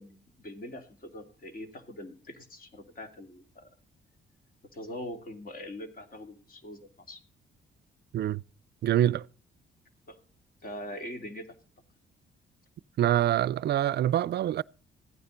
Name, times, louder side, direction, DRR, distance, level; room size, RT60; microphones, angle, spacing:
voice 1, 0.0-3.7 4.7-7.2 10.1-10.2 10.6-11.5, left 1 dB, 45° left, 2.7 m, -42 dB
voice 2, 8.8-9.3 13.0-14.6, right 12 dB, 55° right, 0.4 m, -25 dB
15.0 x 9.5 x 3.9 m
cardioid pair, 90°, 20 cm